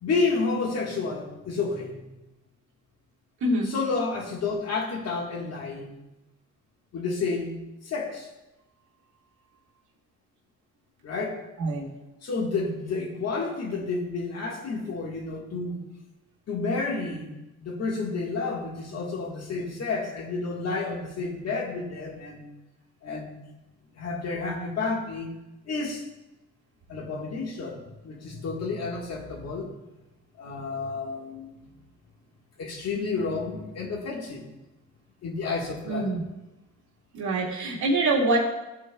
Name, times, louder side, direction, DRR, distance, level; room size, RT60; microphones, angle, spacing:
voice 1, 0.0-2.1 3.6-6.0 6.9-7.6 7.8-8.3 11.0-11.5 12.2-15.8 16.5-17.3 17.6-22.5 23.0-23.4 24.0-25.3 25.6-26.0 26.9-29.7 30.4-31.7 32.6-34.5 35.2-36.2, left 4 dB, 55° left, 0 dB, 1.5 m, -30 dB
voice 2, 3.4-3.7 11.6-11.9 35.9-36.2 37.1-38.4, right 2 dB, 70° right, -5 dB, 1.9 m, -25 dB
13.5 x 4.5 x 2.2 m, 0.99 s
cardioid pair, 90°, 30 cm